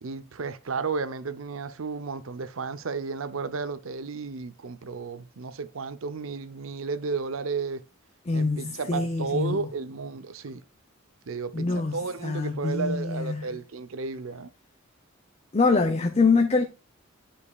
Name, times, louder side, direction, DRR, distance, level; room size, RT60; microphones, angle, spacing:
voice 1, 0.0-7.8 8.3-10.6 11.3-14.5, right 4 dB, 90° right, 0.7 m, -33 dB
voice 2, 8.3-9.6 11.5-13.4 15.5-16.6, left 3 dB, 30° left, 0.6 m, -24 dB
9.7 x 5.1 x 2.3 m
head